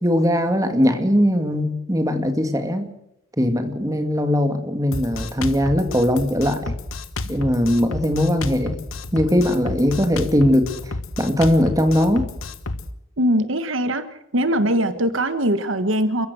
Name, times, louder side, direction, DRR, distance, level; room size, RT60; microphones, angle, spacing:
voice 1, 0.0-2.9 3.4-6.7 7.3-8.8 9.1-10.9 11.2-12.3, equal, 15° right, 6 dB, 2.3 m, -20 dB
Drum kit, 4.9-12.9, left 2 dB, 75° left, 1.4 m, -31 dB
voice 2, 13.2-14.1 14.3-16.3, right 1 dB, 65° right, 11 dB, 1.4 m, -21 dB
29.0 x 15.5 x 6.3 m, 0.84 s
head